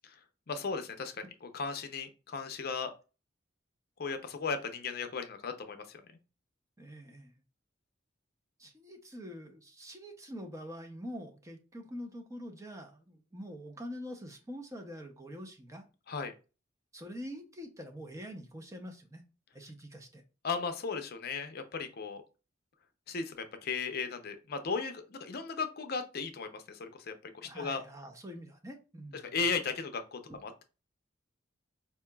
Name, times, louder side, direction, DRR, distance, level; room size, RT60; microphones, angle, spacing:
voice 1, 0.5-2.9 4.0-6.0 16.1-16.3 20.4-22.2 23.1-27.8 29.1-30.6, left 5 dB, 55° left, 0.6 m, -36 dB
voice 2, 6.8-7.3 8.6-15.8 16.9-19.2 19.5-20.2 27.4-29.4 30.3-30.4, equal, 15° right, 0.6 m, -45 dB
4.5 x 2.8 x 2.2 m
head